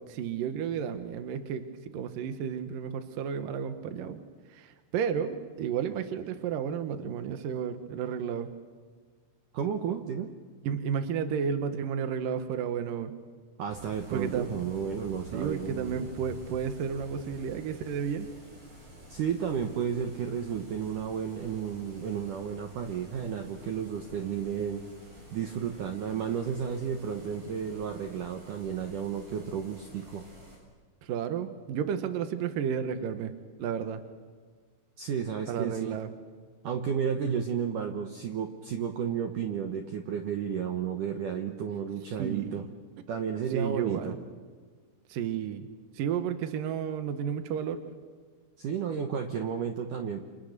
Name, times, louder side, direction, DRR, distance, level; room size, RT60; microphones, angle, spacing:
voice 1, 0.0-1.7 1.9-4.2 4.5-8.5 10.6-13.1 14.1-14.5 15.3-18.3 31.0-33.3 33.6-34.0 35.5-36.1 42.2-42.7 43.5-44.1 45.1-45.7 45.9-47.8, right 7 dB, 75° right, 9 dB, 2.0 m, -32 dB
voice 2, 9.5-10.3 13.6-16.0 19.1-24.8 25.3-30.2 35.0-36.0 36.6-42.6 43.1-44.2 48.6-50.2, right 7 dB, 90° right, 5 dB, 1.8 m, -32 dB
sound 1, 13.7-30.6, equal, 45° right, 9.3 m, -50 dB
29.5 x 27.5 x 6.7 m, 1.5 s
omnidirectional pair, 5.7 m